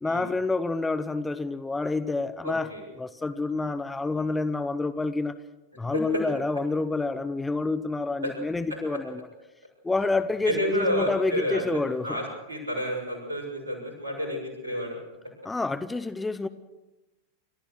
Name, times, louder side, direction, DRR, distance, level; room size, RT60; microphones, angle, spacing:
voice 1, 0.0-5.4 5.8-9.3 9.8-12.2 15.4-16.5, left 3 dB, 10° left, 0.8 m, -28 dB
voice 2, 2.4-2.8 5.9-6.2 8.2-8.3 8.9-9.0 10.4-15.0, equal, 75° right, 6.7 m, -30 dB
29.0 x 14.0 x 6.4 m
figure-of-eight pair, 90°, 0 cm